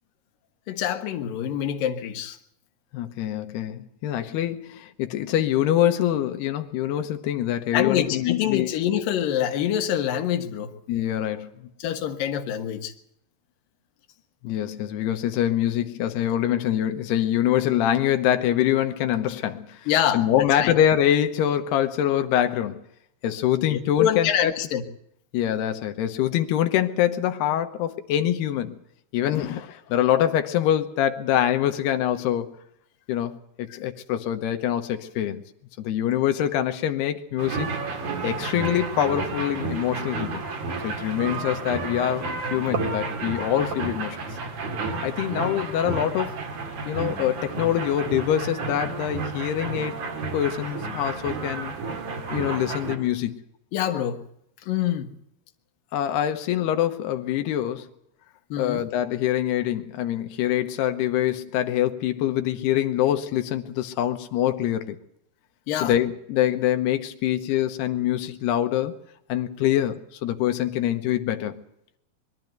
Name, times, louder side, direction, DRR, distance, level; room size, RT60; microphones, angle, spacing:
voice 1, 0.7-2.4 7.7-10.7 11.8-12.9 19.9-20.7 23.7-24.8 29.3-29.5 53.7-54.2 54.7-55.1 58.5-58.8 65.7-65.9, left 10 dB, 65° left, 2.9 m, -26 dB
voice 2, 2.9-8.7 10.9-11.5 14.4-19.9 20.1-22.8 23.2-24.5 25.3-28.8 29.1-32.5 33.1-35.4 35.8-37.7 38.2-40.4 40.8-44.2 45.0-46.4 46.9-49.9 50.3-51.7 52.3-53.4 55.9-57.9 58.6-65.0 65.8-68.9 69.3-71.6, left 11 dB, 90° left, 3.1 m, -24 dB
sound 1, 37.4-53.0, right 4 dB, 50° right, 3.5 m, -31 dB
22.5 x 12.5 x 9.4 m
omnidirectional pair, 4.6 m